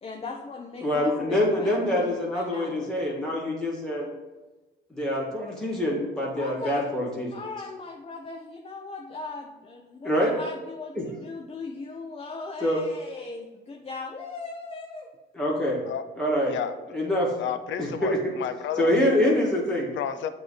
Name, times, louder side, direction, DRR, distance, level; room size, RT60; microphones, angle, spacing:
voice 1, 0.0-2.8 6.3-6.9 7.3-15.1, left 3 dB, 30° left, 1 dB, 0.7 m, -38 dB
voice 2, 0.8-4.1 4.9-7.3 10.0-10.3 10.9-11.1 12.6-12.8 15.3-15.8 16.2-16.6 16.9-17.3 17.8-18.2 18.8-19.9, left 1 dB, 5° left, -5 dB, 2.1 m, -25 dB
voice 3, 17.4-18.9 19.9-20.3, left 9 dB, 70° left, 11 dB, 0.6 m, -31 dB
7.7 x 3.0 x 5.7 m, 1.2 s
cardioid pair, 90°, 20 cm